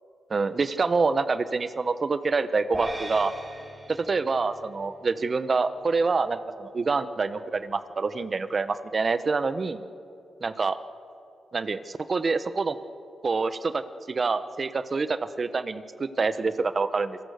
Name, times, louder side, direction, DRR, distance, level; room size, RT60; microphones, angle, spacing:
voice 1, 0.3-3.3 3.9-9.8 10.4-10.8 11.5-12.8 13.2-17.2, right 4 dB, 45° right, 12 dB, 1.2 m, -26 dB
sound 1, 2.7-5.2, right 1 dB, 25° right, 6.3 m, -38 dB
28.5 x 23.0 x 6.7 m, 2.6 s
cardioid pair, 65°, 0 cm